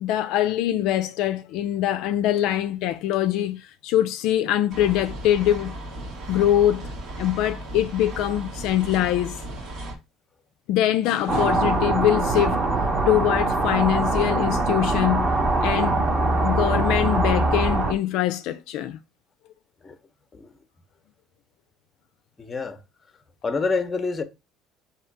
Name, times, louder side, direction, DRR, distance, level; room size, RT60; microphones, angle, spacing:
voice 1, 0.0-5.8 6.3-6.9 7.2-9.4 10.7-15.3 15.6-16.0 16.4-19.0, left 12 dB, 70° left, 0.3 m, -23 dB
sound 1, 4.7-10.0, right 1 dB, 55° right, 1.3 m, -36 dB
sound 2, 11.3-17.9, right 2 dB, 35° right, 1.1 m, -22 dB
voice 2, 22.4-22.8 23.4-24.2, left 4 dB, 25° left, 0.7 m, -27 dB
3.7 x 2.8 x 4.5 m
supercardioid pair, 100°, 0 cm